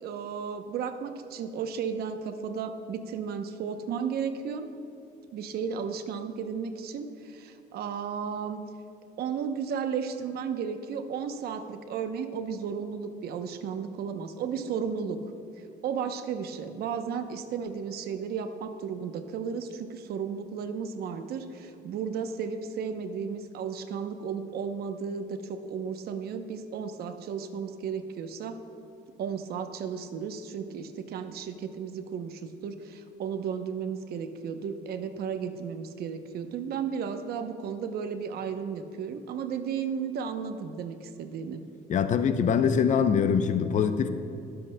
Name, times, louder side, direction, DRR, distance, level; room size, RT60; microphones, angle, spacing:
voice 1, 0.0-4.7 5.3-8.6 9.2-15.2 15.8-28.6 29.2-41.6, right 6 dB, 65° right, 8 dB, 0.8 m, -34 dB
voice 2, 41.9-44.1, left 7 dB, 45° left, 10 dB, 0.6 m, -23 dB
22.0 x 7.7 x 2.2 m, 2.8 s
cardioid pair, 110°, 17 cm